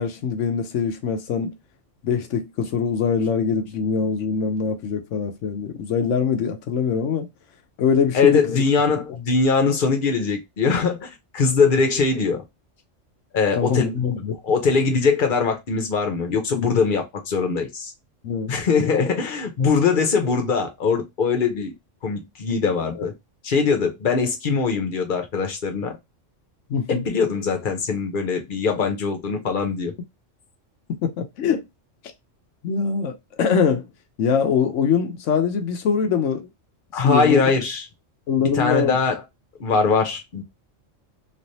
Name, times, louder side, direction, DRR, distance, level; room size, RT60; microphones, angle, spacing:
voice 1, 0.0-1.5 2.0-7.3 7.8-8.6 13.6-14.4 16.5-16.8 18.2-18.6 23.0-23.1 26.7-27.0 31.0-31.6 32.6-33.9 34.2-36.5 37.0-37.5 38.3-39.0, left 6 dB, 75° left, 1.0 m, -23 dB
voice 2, 8.1-12.4 13.3-14.0 14.4-17.9 18.5-21.7 22.0-23.1 23.4-26.0 26.9-29.9 36.9-37.8 38.4-39.2 39.6-40.4, left 5 dB, 45° left, 0.9 m, -21 dB
3.2 x 2.6 x 2.7 m
omnidirectional pair, 1.3 m